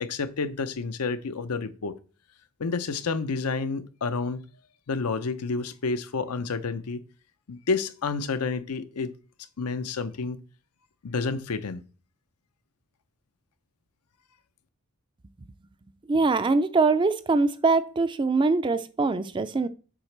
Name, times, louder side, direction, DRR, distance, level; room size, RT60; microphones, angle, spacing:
voice 1, 0.0-2.0 2.6-4.5 4.9-7.0 7.5-9.1 9.6-10.4 11.0-11.8, left 4 dB, 85° left, 0.6 m, -29 dB
voice 2, 16.1-19.7, right 3 dB, 20° right, 0.3 m, -23 dB
7.4 x 4.9 x 3.3 m
head